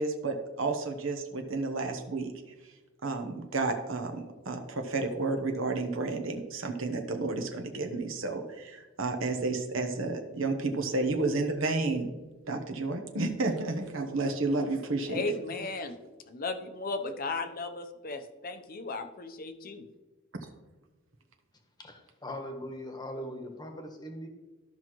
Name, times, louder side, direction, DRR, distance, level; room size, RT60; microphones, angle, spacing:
voice 1, 0.0-2.3 3.0-12.1 12.5-15.2, right 3 dB, 70° right, 4 dB, 1.0 m, -31 dB
voice 2, 15.1-16.0 16.3-19.9, left 3 dB, 45° left, 8 dB, 0.8 m, -35 dB
voice 3, 21.8-24.3, left 1 dB, 20° left, 4 dB, 1.2 m, -40 dB
13.5 x 5.7 x 3.1 m, 1.2 s
head